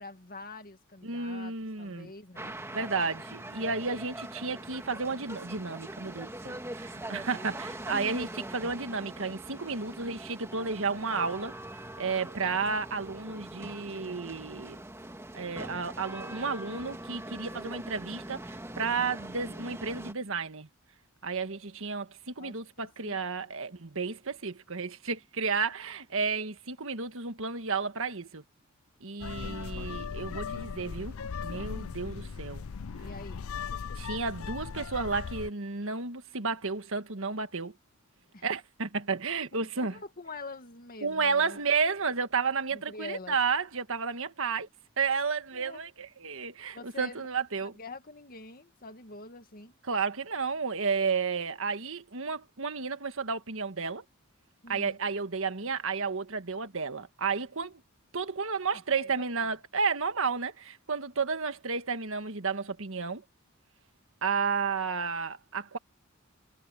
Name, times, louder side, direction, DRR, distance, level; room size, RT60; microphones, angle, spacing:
voice 1, 0.0-2.6 7.6-7.7 22.4-23.2 33.0-33.5 38.3-38.4 39.5-41.6 42.7-43.4 45.5-45.8 46.7-47.2 47.6-49.7 54.6-55.0 58.7-59.5, left 3 dB, 45° left, 2.1 m, -46 dB
voice 2, 1.0-2.1 2.7-11.5 12.0-14.8 15.3-20.7 21.2-28.4 29.0-31.1 31.4-32.6 34.0-37.7 38.4-40.0 41.0-44.7 45.0-47.7 49.9-54.0 54.7-57.8 58.1-63.2 64.2-65.8, right 5 dB, 70° right, 1.6 m, -32 dB
sound 1, 2.4-20.1, right 1 dB, 15° right, 2.1 m, -42 dB
sound 2, 29.2-35.5, left 6 dB, 75° left, 0.5 m, -38 dB
head